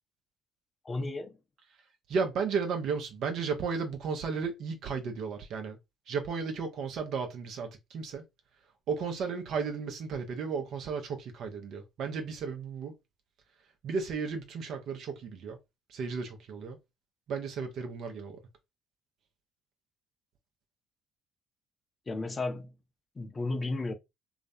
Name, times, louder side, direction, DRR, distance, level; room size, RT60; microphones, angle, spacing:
voice 1, 0.8-1.3 22.1-22.7 23.2-23.9, left 2 dB, 30° left, 0.5 m, -33 dB
voice 2, 2.1-5.8 6.1-8.3 8.9-13.0 13.8-15.6 15.9-16.8 17.3-18.4, right 5 dB, 60° right, 0.5 m, -34 dB
2.4 x 2.1 x 2.6 m
figure-of-eight pair, 50°, 0 cm